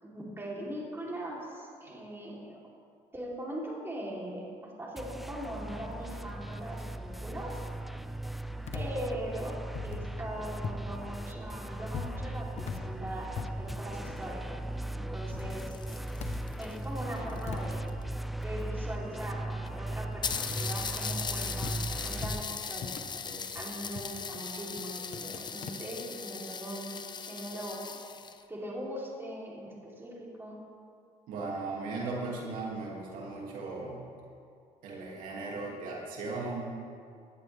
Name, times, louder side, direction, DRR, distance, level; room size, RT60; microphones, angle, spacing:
voice 1, 0.0-2.6 3.1-7.5 8.7-14.6 14.9-15.7 16.6-17.9 18.4-26.9 27.2-27.8 28.5-30.6, right 1 dB, 15° right, -5 dB, 3.5 m, -40 dB
sound 1, 5.0-22.4, right 1 dB, ahead, 0.4 m, -38 dB
sound 2, 8.7-10.9 11.2-14.7 15.0-16.6 16.9-21.8 22.1-25.7, left 6 dB, 55° left, 1.0 m, -43 dB
sound 3, 15.2-18.0 18.9-19.0 19.2-19.3 19.7-19.8 20.2-28.4, left 6 dB, 30° left, 0.7 m, -38 dB
voice 2, 31.3-34.0 34.8-36.8, right 3 dB, 80° right, -3 dB, 2.5 m, -37 dB
17.5 x 11.0 x 3.5 m, 2.3 s
cardioid pair, 100°, 14 cm